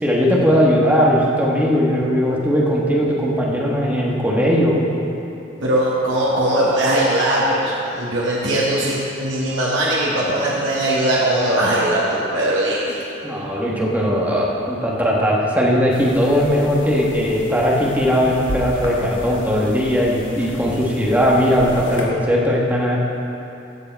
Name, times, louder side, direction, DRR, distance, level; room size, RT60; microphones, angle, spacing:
voice 1, 0.0-4.8 13.2-23.0, equal, 10° right, -4 dB, 1.4 m, -18 dB
voice 2, 5.6-13.0, right 1 dB, 70° right, -6 dB, 1.4 m, -20 dB
sound 1, 15.9-22.0, left 1 dB, 65° left, 1.4 m, -34 dB
15.5 x 6.7 x 4.6 m, 2.9 s
head